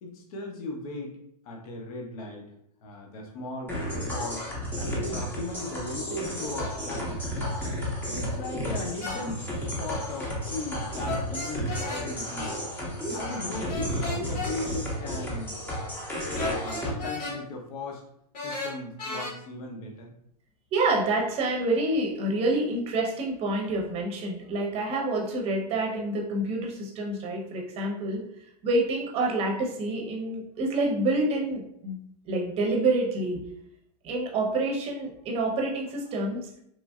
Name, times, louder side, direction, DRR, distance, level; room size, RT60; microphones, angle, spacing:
voice 1, 0.0-1.2 1.4-2.5 2.8-3.7 4.1-7.2 8.0-9.4 9.8-12.6 13.1-15.5 16.6-18.0 18.4-20.1, left 2 dB, 60° left, 0 dB, 0.7 m, -37 dB
sound 1, 3.7-16.9, equal, 10° left, 0.6 m, -32 dB
sound 2, 9.0-9.2 11.0-12.1 13.7-14.5 16.4-17.4 18.3-19.3, left 3 dB, 85° left, 1.3 m, -34 dB
voice 2, 20.7-28.2 28.6-32.0 32.3-33.4 34.0-36.5, right 2 dB, 30° right, 0 dB, 0.7 m, -27 dB
3.1 x 2.5 x 2.3 m, 0.74 s
hypercardioid pair, 135°, 21 cm